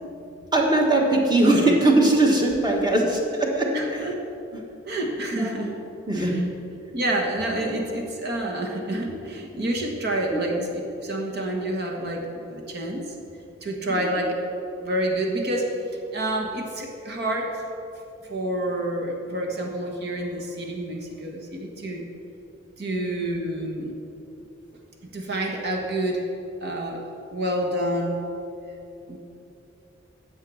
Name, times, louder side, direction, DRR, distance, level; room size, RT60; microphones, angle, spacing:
voice 1, 0.5-4.0 5.4-5.7 6.1-6.3 13.9-14.0 22.9-23.0, right 2 dB, 20° right, 0 dB, 1.5 m, -20 dB
voice 2, 3.7-4.1 4.9-5.8 6.1-6.4 6.9-10.7 11.0-13.1 13.6-14.3 14.8-15.7 16.1-17.6 18.3-22.1 22.8-23.9 25.1-26.2 26.6-27.0 27.3-28.2 29.1-29.2, right 1 dB, 55° right, 1 dB, 1.5 m, -28 dB
10.5 x 7.6 x 6.3 m, 2.8 s
head